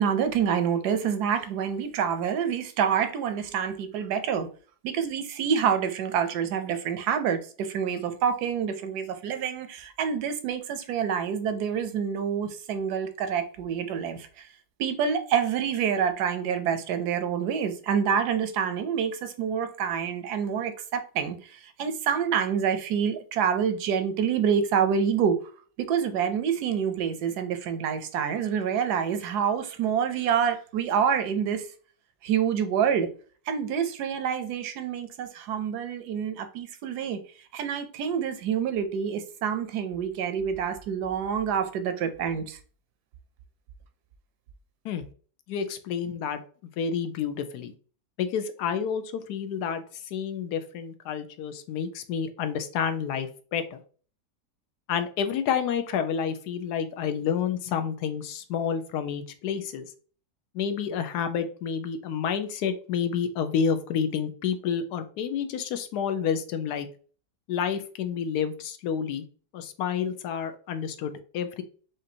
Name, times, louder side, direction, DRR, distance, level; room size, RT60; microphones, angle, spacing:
voice 1, 0.0-4.5 4.8-14.5 14.8-25.4 25.8-31.7 32.2-33.1 33.5-37.2 37.5-42.6, right 7 dB, 80° right, 1.2 m, -27 dB
voice 2, 45.5-46.4 46.8-47.7 48.2-53.8 54.9-59.9 60.5-66.9 67.5-69.3 69.5-71.6, left 7 dB, 80° left, 1.1 m, -29 dB
5.1 x 2.6 x 2.7 m
omnidirectional pair, 1.7 m